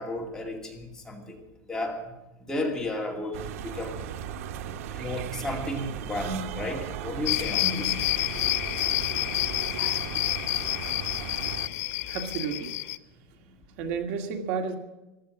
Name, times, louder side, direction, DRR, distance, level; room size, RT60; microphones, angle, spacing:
voice 1, 0.0-2.1 2.5-4.0 4.9-8.0 9.8-10.1, left 1 dB, 5° left, 0 dB, 2.3 m, -33 dB
sound 1, 3.3-11.7, right 9 dB, 90° right, 1.2 m, -37 dB
sound 2, 7.3-13.0, left 17 dB, 90° left, 0.8 m, -29 dB
voice 2, 12.0-12.7 13.8-14.8, right 6 dB, 55° right, 5 dB, 2.0 m, -31 dB
15.5 x 13.0 x 6.0 m, 1.0 s
supercardioid pair, 175°, 8 cm